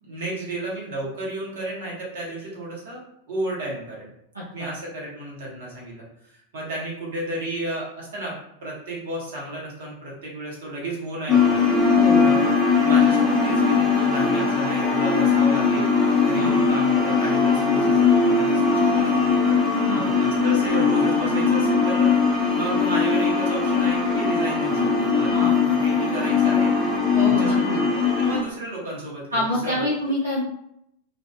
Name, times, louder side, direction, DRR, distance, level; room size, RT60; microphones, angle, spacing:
voice 1, 0.0-4.1 4.5-11.7 12.2-12.4 12.7-19.6 19.9-22.1 22.5-26.7 27.2-27.6 28.0-29.9, right 1 dB, 55° right, -4 dB, 1.1 m, -33 dB
voice 2, 4.3-4.7 11.9-12.3 16.3-16.5 19.9-20.0 25.3-25.5 27.1-27.8 29.3-30.4, equal, 80° right, -7 dB, 0.7 m, -27 dB
sound 1, 11.3-28.4, left 5 dB, 10° left, 1.0 m, -20 dB
2.6 x 2.5 x 2.3 m, 0.76 s
figure-of-eight pair, 90°, 0 cm